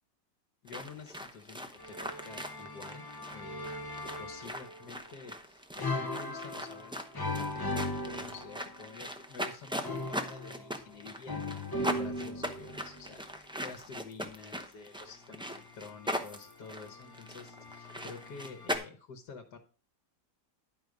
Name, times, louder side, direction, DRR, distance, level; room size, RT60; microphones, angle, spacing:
voice 1, 0.6-3.7 4.2-7.0 7.3-19.6, left 5 dB, 80° left, 4 dB, 1.7 m, -49 dB
sound 1, 0.7-18.8, equal, 5° right, 0.3 m, -40 dB
sound 2, 1.8-4.9 5.8-9.0 9.8-13.2 15.3-18.7, left 2 dB, 20° left, 0.8 m, -39 dB
11.0 x 4.8 x 5.2 m, 0.38 s
omnidirectional pair, 1.8 m